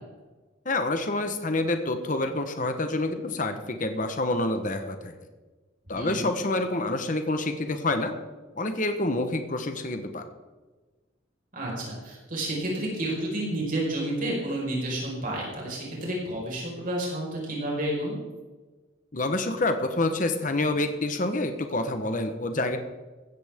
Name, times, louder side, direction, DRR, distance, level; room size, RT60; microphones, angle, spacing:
voice 1, 0.6-5.1 5.9-8.1 8.5-10.3 19.1-22.8, left 2 dB, 40° left, 7 dB, 1.1 m, -27 dB
voice 2, 11.5-18.2, right 1 dB, 45° right, -3 dB, 4.9 m, -30 dB
16.0 x 14.0 x 3.7 m, 1.3 s
head